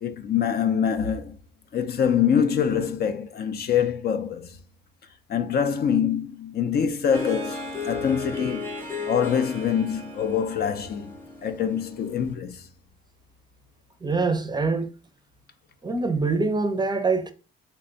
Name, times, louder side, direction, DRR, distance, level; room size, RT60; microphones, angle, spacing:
voice 1, 0.0-1.4 1.7-4.6 5.3-8.8 9.1-11.2 11.4-12.7, left 8 dB, 55° left, 0.5 m, -25 dB
Harp, 7.1-12.3, left 3 dB, 10° left, 0.8 m, -35 dB
voice 2, 14.0-14.9 15.8-17.3, right 3 dB, 20° right, 0.5 m, -24 dB
3.4 x 2.2 x 3.8 m
cardioid pair, 90°, 20 cm